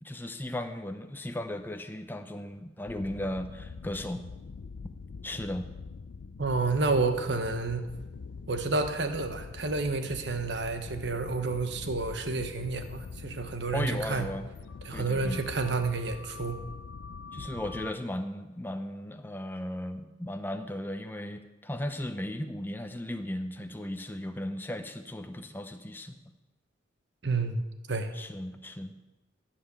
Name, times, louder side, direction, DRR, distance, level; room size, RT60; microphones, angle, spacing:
voice 1, 0.0-4.2 5.2-5.7 13.7-14.4 14.9-15.4 17.3-26.2 28.1-29.0, left 1 dB, 10° left, 7 dB, 0.7 m, -36 dB
sound 1, 2.9-17.9, left 4 dB, 85° left, 0.5 m, -44 dB
voice 2, 6.4-7.8 8.5-14.2 14.8-16.6 27.2-27.6 27.9-28.1, right 3 dB, 65° right, 8 dB, 1.1 m, -30 dB
15.0 x 5.9 x 6.9 m, 1.1 s
head